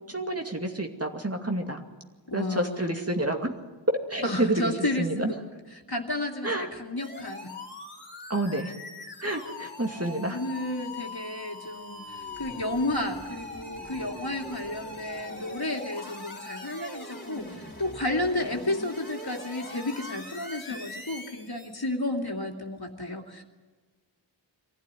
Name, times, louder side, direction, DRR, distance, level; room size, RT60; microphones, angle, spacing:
voice 1, 0.1-1.8 2.3-3.5 3.9-4.6 5.0-5.3 6.4-6.7 8.3-8.7 9.2-10.4, right 1 dB, 30° right, 3 dB, 2.4 m, -28 dB
voice 2, 2.3-3.0 4.2-5.4 5.7-7.5 9.9-23.4, left 1 dB, 55° left, 2 dB, 2.7 m, -32 dB
sound 1, 7.0-21.8, left 2 dB, 25° left, 3.9 m, -42 dB
23.5 x 16.0 x 9.6 m, 1.3 s
wide cardioid pair, 55°, 46 cm